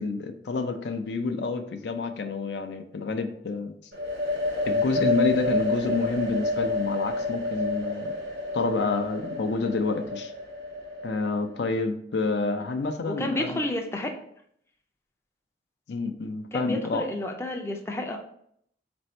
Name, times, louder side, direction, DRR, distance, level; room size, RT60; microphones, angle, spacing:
voice 1, 0.0-3.7 4.6-8.1 8.5-10.3 11.0-13.6 15.9-17.0, left 3 dB, 80° left, 7 dB, 0.5 m, -28 dB
sound 1, 3.9-11.6, left 2 dB, 80° right, 0.9 m, -29 dB
voice 2, 13.1-14.2 16.5-18.2, left 1 dB, 15° left, 3 dB, 0.4 m, -30 dB
4.1 x 2.6 x 4.3 m, 0.69 s
head